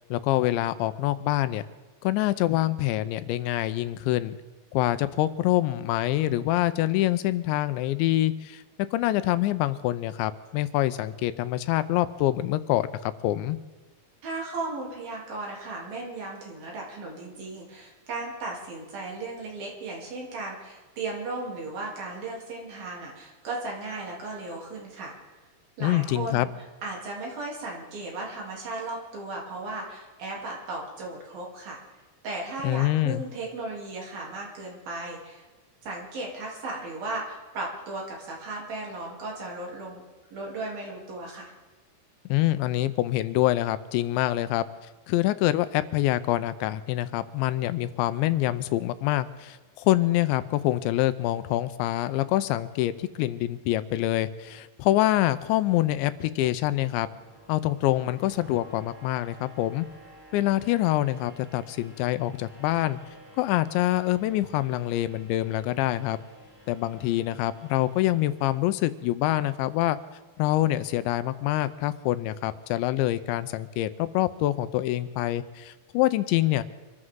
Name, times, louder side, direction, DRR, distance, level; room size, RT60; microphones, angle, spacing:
voice 1, 0.1-1.6 2.0-4.4 4.7-8.6 8.9-13.6 25.8-26.5 32.6-33.2 42.3-44.6 45.1-57.1 57.5-59.9 60.3-63.0 63.4-66.2 66.7-70.0 70.4-76.6, left 15 dB, 90° left, 13 dB, 3.0 m, -25 dB
voice 2, 14.2-25.1 25.8-26.5 26.8-31.8 32.2-35.4 35.8-40.0 40.3-41.5, right 2 dB, 55° right, -2 dB, 4.8 m, -36 dB
sound 1, 56.1-69.1, right 1 dB, 40° right, 6.9 m, -53 dB
26.0 x 14.0 x 3.8 m, 1.2 s
omnidirectional pair, 5.1 m